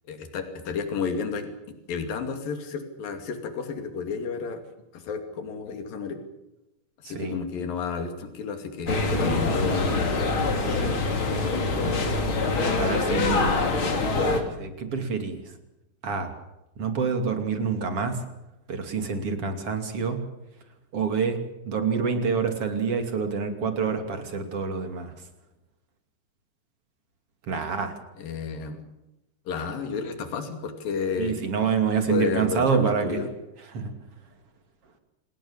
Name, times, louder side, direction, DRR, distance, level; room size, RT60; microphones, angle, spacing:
voice 1, 0.1-4.6 4.9-6.2 7.0-9.9 12.9-13.5 14.2-14.3 28.2-28.9 29.5-31.3 32.1-33.3, left 5 dB, 80° left, 6 dB, 4.4 m, -32 dB
voice 2, 7.0-7.4 10.7-11.0 12.7-13.7 14.6-15.4 16.0-16.3 16.8-18.2 18.7-20.3 20.9-21.4 21.6-25.1 27.5-27.9 31.2-33.2 33.7-33.9, right 5 dB, 45° right, 6 dB, 3.4 m, -27 dB
sound 1, 8.9-14.4, left 3 dB, 40° left, 3.4 m, -24 dB
27.5 x 19.5 x 7.3 m, 0.94 s
omnidirectional pair, 4.0 m